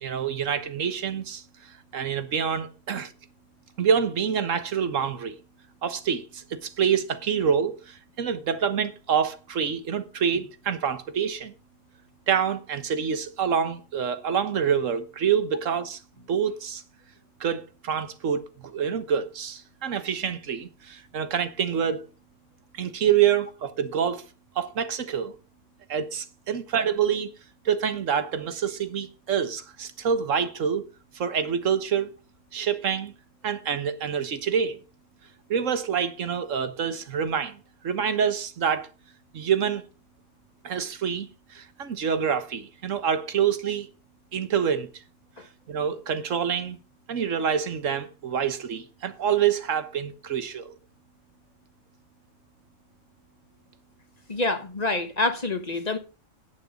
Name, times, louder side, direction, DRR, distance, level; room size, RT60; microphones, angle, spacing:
voice 1, 0.0-1.4 1.9-3.1 3.8-5.4 5.8-11.5 12.3-16.0 16.3-16.8 17.4-22.0 22.8-24.2 24.6-25.3 25.9-27.3 27.6-30.9 31.1-32.1 32.5-33.1 33.4-34.8 35.5-37.6 37.8-38.9 39.3-39.8 40.6-43.9 44.3-44.9 45.7-46.8 47.1-50.6, right 7 dB, 85° right, 1.5 m, -26 dB
voice 2, 54.3-56.0, left 2 dB, 35° left, 1.4 m, -27 dB
9.8 x 9.0 x 5.3 m
omnidirectional pair, 1.3 m